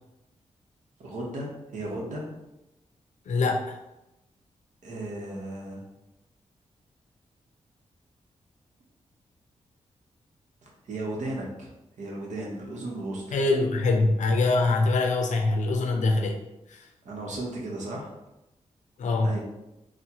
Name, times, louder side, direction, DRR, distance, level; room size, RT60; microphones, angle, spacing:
voice 1, 1.0-2.2 4.8-5.8 10.6-11.7 12.0-13.3 17.0-18.1 19.2-19.4, right 2 dB, 80° right, -2 dB, 1.0 m, -35 dB
voice 2, 3.3-3.8 13.3-16.4 16.7-16.9 19.0-19.4, left 3 dB, 80° left, 2 dB, 0.6 m, -24 dB
4.1 x 2.2 x 2.9 m, 0.93 s
cardioid pair, 65°, 12 cm